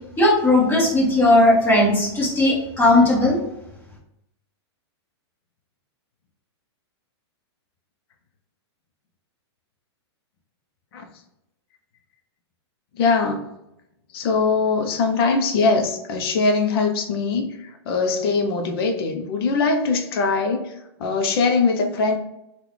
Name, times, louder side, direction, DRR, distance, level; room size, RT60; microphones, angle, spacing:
voice 1, 0.2-3.4, left 1 dB, 15° left, -6 dB, 1.5 m, -17 dB
voice 2, 12.9-13.5 14.1-20.7 21.0-22.2, left 4 dB, 60° left, 4 dB, 0.7 m, -21 dB
3.7 x 2.4 x 3.1 m, 0.85 s
hypercardioid pair, 140°, 14 cm